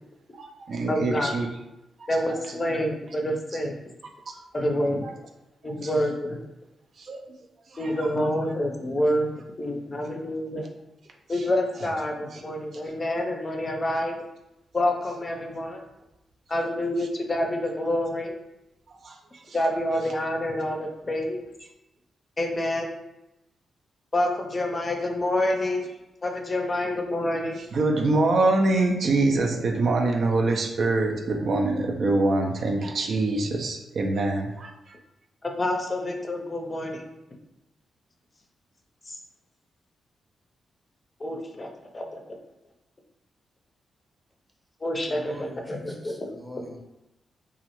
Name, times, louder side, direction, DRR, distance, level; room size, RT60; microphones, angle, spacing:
voice 1, 0.3-1.5 4.3-4.4 4.9-5.1 7.0-7.3 7.8-7.9 8.2-8.3 12.3-12.4 19.0-19.4 25.7-25.8 27.7-34.7, right 2 dB, 65° right, 2 dB, 0.4 m, -24 dB
voice 2, 0.9-1.3 2.1-3.7 4.5-5.0 5.6-6.4 7.8-10.7 11.3-14.2 14.7-15.8 16.5-18.3 19.5-21.4 22.4-23.0 24.1-25.9 26.2-27.6 35.4-37.1 39.1-39.2 41.2-41.7 41.9-42.2 44.8-46.3, left 1 dB, 35° left, 2 dB, 0.5 m, -27 dB
voice 3, 45.1-46.8, left 1 dB, 5° right, 0 dB, 0.7 m, -43 dB
2.3 x 2.0 x 2.9 m, 0.94 s
supercardioid pair, 50°, 0 cm